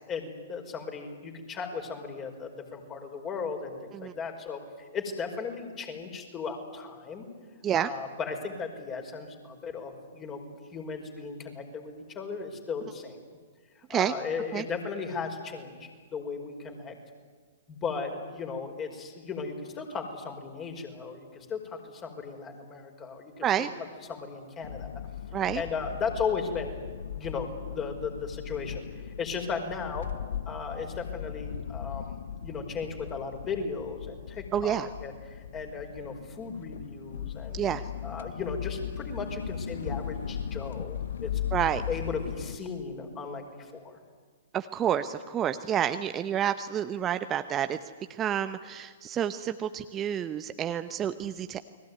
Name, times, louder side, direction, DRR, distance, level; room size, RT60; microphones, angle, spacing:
voice 1, 0.1-7.3 7.7-10.5 10.7-13.2 13.9-17.0 17.7-23.5 24.1-24.9 25.5-26.8 27.2-30.1 30.5-37.6 38.0-41.4 41.9-44.0, left 5 dB, 25° left, 4 dB, 5.2 m, -36 dB
sound 1, 24.6-42.6, left 9 dB, 65° left, 1.0 m, -38 dB
voice 2, 34.5-34.9 37.5-37.8 41.5-41.8 44.5-47.8 48.1-51.6, right 10 dB, 25° right, 10 dB, 0.9 m, -29 dB
29.5 x 21.0 x 9.6 m, 1.5 s
figure-of-eight pair, 115°, 0 cm